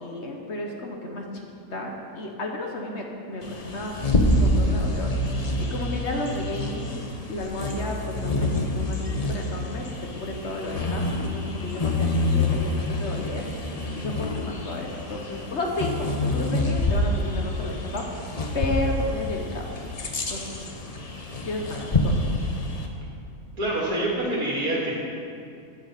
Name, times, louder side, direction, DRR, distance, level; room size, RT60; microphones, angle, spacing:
voice 1, 0.0-1.4 1.7-4.0 4.3-5.1 5.6-9.8 10.1-13.4 13.9-18.2 18.5-19.6 20.3-20.6 21.5-22.1, left 2 dB, 50° left, 1 dB, 1.1 m, -32 dB
Bird vocalization bird call bird song, 3.4-22.9, left 1 dB, 35° left, 0.6 m, -27 dB
voice 2, 23.6-24.9, right 1 dB, 70° right, -4 dB, 2.7 m, -26 dB
9.3 x 6.4 x 6.7 m, 2.5 s
omnidirectional pair, 1.6 m